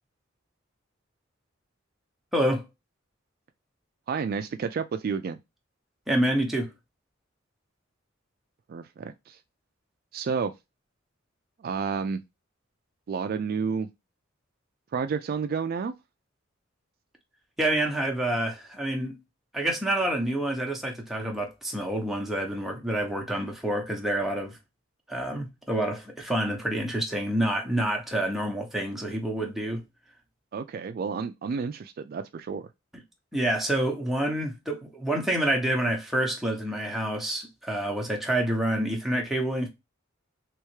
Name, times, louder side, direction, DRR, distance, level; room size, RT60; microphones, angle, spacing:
voice 1, 2.3-2.7 6.1-6.7 17.6-19.2 19.5-24.6 25.1-29.8 33.3-39.7, right 1 dB, ahead, 0.9 m, -28 dB
voice 2, 4.1-5.4 8.7-9.4 10.1-10.6 11.6-12.2 13.1-13.9 14.9-15.9 30.5-32.7, right 5 dB, 50° right, 0.3 m, -30 dB
3.4 x 3.1 x 3.1 m
head